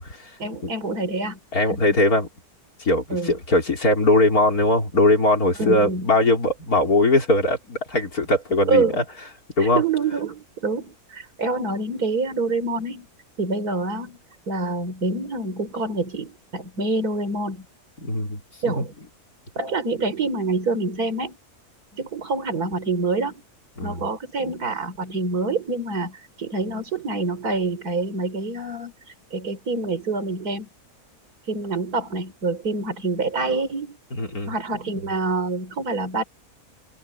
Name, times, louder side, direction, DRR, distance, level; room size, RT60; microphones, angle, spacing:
voice 1, 0.4-1.4 1.7-1.8 3.1-3.3 5.6-6.1 8.7-9.0 9.6-13.1 13.4-14.2 14.5-17.7 18.6-18.9 19.6-21.4 22.0-23.4 23.8-28.9 29.3-30.7 31.5-34.0 34.5-36.2, right 3 dB, 85° right, 4.0 m, -26 dB
voice 2, 1.5-2.3 2.8-9.0 9.6-9.8 18.0-18.4 18.8-18.9 23.8-24.0 34.1-34.5, left 2 dB, 75° left, 4.7 m, -20 dB
omnidirectional pair, 1.6 m